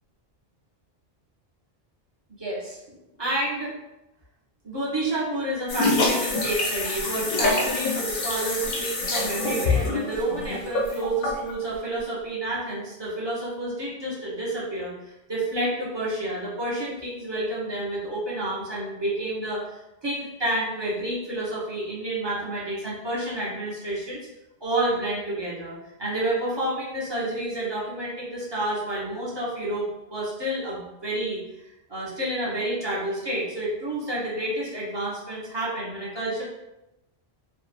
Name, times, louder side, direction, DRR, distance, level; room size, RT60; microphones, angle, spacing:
voice 1, 2.4-2.8 3.2-3.7 4.6-24.2 24.6-31.4 31.9-36.4, right 1 dB, 30° right, -7 dB, 0.6 m, -29 dB
sound 1, 5.7-11.5, left 2 dB, 60° left, 0.6 m, -26 dB
2.6 x 2.0 x 2.4 m, 0.95 s
omnidirectional pair, 1.1 m